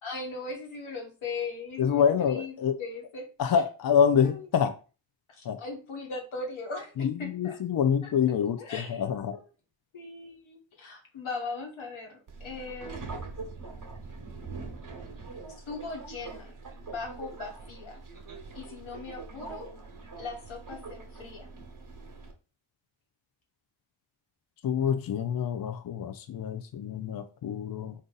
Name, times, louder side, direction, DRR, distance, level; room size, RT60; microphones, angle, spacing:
voice 1, 0.0-3.3 3.9-4.5 5.3-7.6 8.0-8.1 8.6-9.0 9.3-9.4 9.9-13.0 15.6-16.5 16.9-18.0 18.5-19.7 20.1-21.5, left 4 dB, 80° left, 1.3 m, -39 dB
voice 2, 1.8-2.8 3.4-4.7 5.5-5.6 7.0-9.4 24.6-27.9, left 7 dB, 50° left, 0.5 m, -26 dB
Subway metro underground, 12.3-22.3, right 4 dB, 40° right, 1.0 m, -43 dB
3.9 x 2.5 x 3.8 m
cardioid pair, 65°, 48 cm